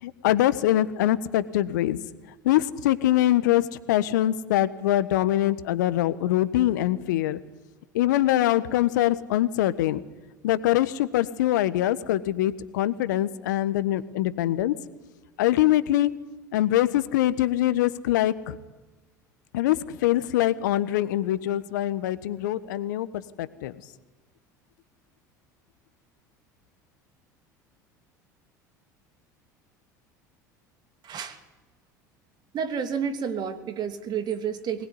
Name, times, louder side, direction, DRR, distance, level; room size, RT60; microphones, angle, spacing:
voice 1, 0.0-2.0 2.4-7.4 7.9-10.0 10.4-14.7 15.4-16.1 16.5-18.6 19.5-23.7, left 14 dB, 70° left, 15 dB, 1.3 m, -23 dB
voice 2, 31.0-31.4 32.5-34.9, right 7 dB, 45° right, 8 dB, 2.9 m, -30 dB
22.5 x 19.5 x 9.9 m, 1.2 s
hypercardioid pair, 70°, 10 cm